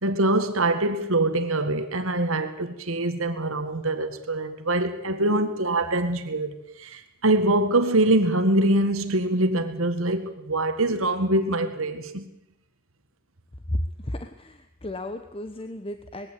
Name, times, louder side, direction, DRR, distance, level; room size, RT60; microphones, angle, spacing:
voice 1, 0.0-12.3, right 2 dB, 75° right, 8 dB, 1.9 m, -24 dB
voice 2, 13.7-16.3, left 1 dB, 25° left, 8 dB, 1.0 m, -33 dB
21.0 x 16.5 x 8.5 m, 0.86 s
head